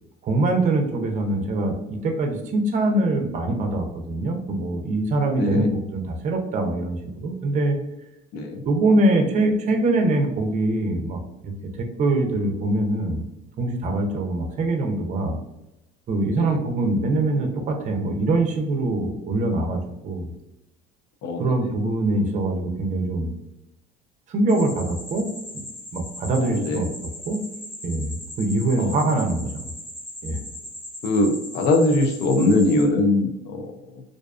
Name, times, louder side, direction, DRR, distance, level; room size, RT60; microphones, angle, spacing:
voice 1, 0.2-7.8 8.6-13.2 13.6-15.4 16.1-20.3 21.4-23.3 24.3-25.3 25.5-25.6 25.9-26.9 27.3-27.4 27.8-29.7 30.2-30.4, right 2 dB, 40° right, 4 dB, 0.5 m, -23 dB
voice 2, 5.3-5.7 8.3-8.7 16.3-16.6 21.2-21.7 26.4-26.9 28.8-29.0 31.0-34.0, left 2 dB, 60° left, 4 dB, 0.5 m, -22 dB
sound 1, 24.5-32.8, left 1 dB, 30° left, 0.9 m, -39 dB
2.5 x 2.2 x 2.3 m, 0.89 s
supercardioid pair, 100°, 19 cm